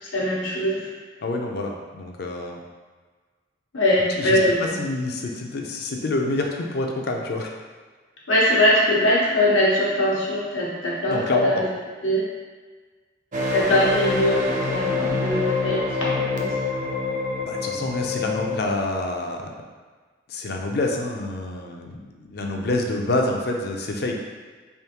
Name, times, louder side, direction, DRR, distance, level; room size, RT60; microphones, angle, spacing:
voice 1, 0.0-0.9 3.7-4.8 8.3-11.6 12.0-12.3 13.5-16.5, left 1 dB, 90° left, -6 dB, 1.1 m, -21 dB
voice 2, 1.2-2.6 4.2-4.4 4.8-7.5 11.1-11.6 17.4-19.5 20.3-24.2, left 2 dB, 55° left, 1 dB, 0.5 m, -27 dB
sound 1, 13.3-18.6, left 3 dB, 40° right, 0.5 m, -26 dB
3.5 x 3.4 x 2.9 m, 1.4 s
head